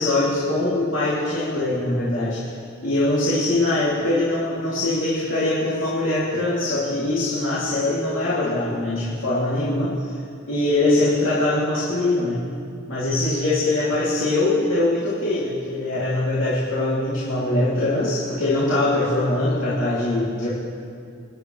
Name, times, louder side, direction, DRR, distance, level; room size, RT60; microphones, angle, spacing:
voice 1, 0.0-2.4 2.8-10.0 10.5-12.4 12.9-20.5, left 2 dB, 80° left, -9 dB, 2.7 m, -22 dB
25.0 x 10.5 x 3.2 m, 2.3 s
head